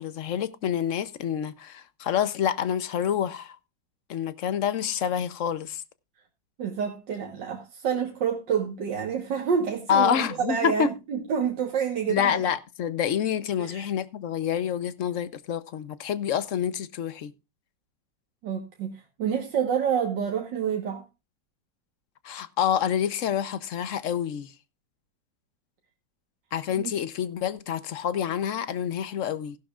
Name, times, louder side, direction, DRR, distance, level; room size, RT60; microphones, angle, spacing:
voice 1, 0.0-3.6 4.1-5.8 9.9-10.9 12.1-17.3 22.2-24.5 26.5-29.6, left 9 dB, 55° left, 0.9 m, -27 dB
voice 2, 6.6-12.4 13.6-13.9 18.4-21.0 26.7-26.9, right 7 dB, 75° right, 2.0 m, -28 dB
16.0 x 11.5 x 2.4 m
omnidirectional pair, 2.0 m